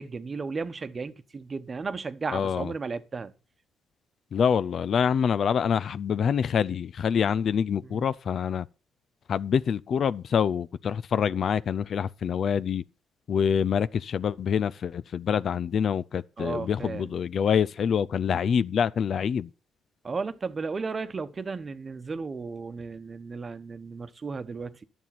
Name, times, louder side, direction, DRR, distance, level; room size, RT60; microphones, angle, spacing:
voice 1, 0.0-3.3 7.8-8.1 16.4-17.1 20.0-24.8, right 4 dB, 35° right, 1.0 m, -34 dB
voice 2, 2.3-2.7 4.3-8.7 9.3-12.8 13.3-19.5, left 7 dB, 55° left, 0.4 m, -26 dB
11.0 x 7.3 x 5.8 m
cardioid pair, 90°, 0 cm